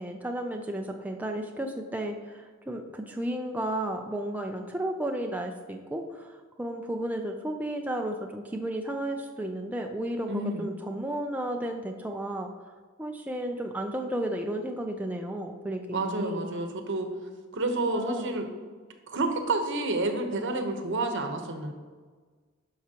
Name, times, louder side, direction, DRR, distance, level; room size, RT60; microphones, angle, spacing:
voice 1, 0.0-12.5 13.0-16.5 17.9-18.3, right 1 dB, 10° right, 2 dB, 0.4 m, -33 dB
voice 2, 10.3-10.7 15.9-17.1 17.5-18.5 19.1-21.7, right 2 dB, 60° right, 5 dB, 1.0 m, -29 dB
11.0 x 5.7 x 2.9 m, 1.5 s
head